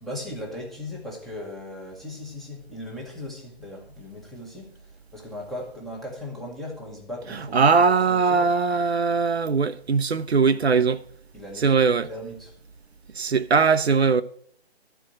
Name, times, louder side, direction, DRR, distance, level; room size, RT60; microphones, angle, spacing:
voice 1, 0.0-8.4 11.3-12.6, left 1 dB, ahead, 1.1 m, -38 dB
voice 2, 7.3-11.0 11.6-12.1 13.1-14.2, right 5 dB, 80° right, 0.7 m, -20 dB
13.0 x 4.6 x 8.7 m
figure-of-eight pair, 150°, 32 cm